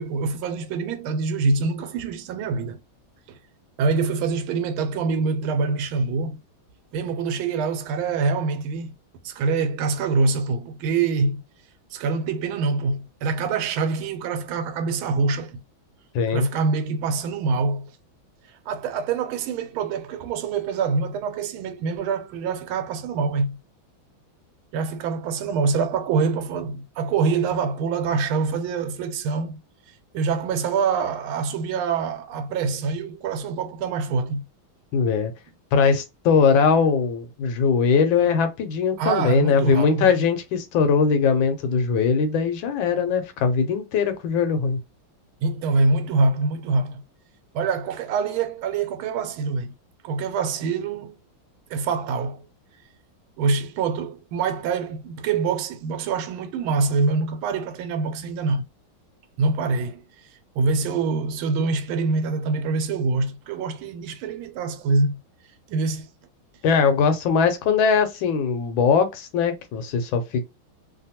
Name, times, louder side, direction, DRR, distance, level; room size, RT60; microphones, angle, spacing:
voice 1, 0.0-2.8 3.3-3.4 3.8-6.4 6.9-8.9 9.2-11.4 11.9-15.6 16.3-17.9 18.7-23.6 24.7-29.6 30.1-34.4 39.0-40.1 45.4-47.0 47.5-49.7 50.0-51.2 51.7-52.4 53.4-58.6 59.4-60.0 60.5-65.2 65.7-66.1, right 4 dB, 85° right, 1.4 m, -25 dB
voice 2, 16.1-16.5 34.9-35.3 35.7-44.8 66.6-70.4, left 5 dB, 80° left, 1.3 m, -21 dB
3.2 x 2.2 x 2.8 m
omnidirectional pair, 2.2 m